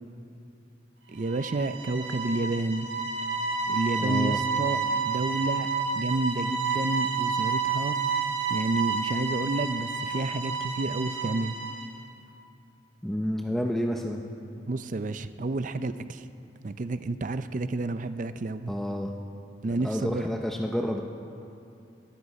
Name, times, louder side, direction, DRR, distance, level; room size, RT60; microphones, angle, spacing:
voice 1, 1.1-2.9 3.7-5.7 5.9-8.0 8.5-11.5 14.7-16.2 16.6-18.7 19.6-20.3, right 2 dB, 45° right, 12 dB, 0.5 m, -30 dB
sound 1, 1.2-12.0, right 5 dB, 85° right, 1.8 m, -30 dB
voice 2, 4.0-4.4 13.0-14.2 18.7-19.1 19.7-21.0, equal, ahead, 1 dB, 0.6 m, -29 dB
22.5 x 13.0 x 4.2 m, 2.6 s
head